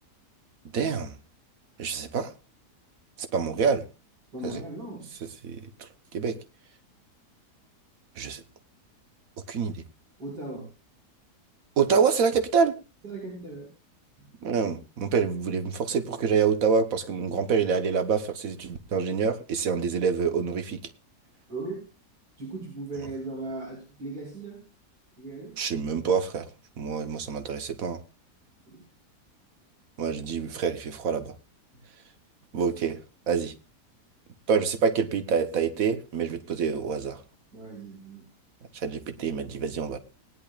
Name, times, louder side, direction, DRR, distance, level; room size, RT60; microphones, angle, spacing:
voice 1, 0.7-1.1 1.8-2.3 3.3-3.8 4.4-4.5 5.4-5.6 6.1-6.4 8.2-8.4 9.5-9.8 11.8-12.7 14.4-20.8 25.6-26.4 26.8-28.0 30.0-31.3 32.5-33.0 33.3-33.5 34.5-37.2 38.8-40.0, right 6 dB, 55° right, 1.5 m, -26 dB
voice 2, 4.3-5.1 10.2-10.7 13.0-13.7 21.5-21.9 22.4-24.7 25.2-25.6 28.7-28.8 37.5-38.2, right 2 dB, 85° right, 5.7 m, -38 dB
20.0 x 10.5 x 2.4 m
omnidirectional pair, 1.8 m